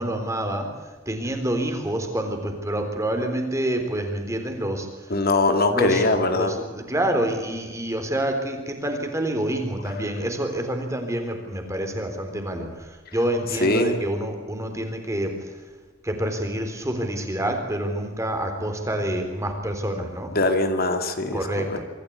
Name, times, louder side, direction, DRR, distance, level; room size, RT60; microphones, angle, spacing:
voice 1, 0.0-5.2 5.7-15.6 16.0-20.3 21.3-21.8, right 1 dB, 15° right, 5 dB, 3.7 m, -27 dB
voice 2, 5.1-6.5 13.6-14.0 20.4-21.4 21.7-21.8, left 2 dB, 50° left, 6 dB, 2.1 m, -21 dB
25.0 x 14.0 x 8.6 m, 1.4 s
head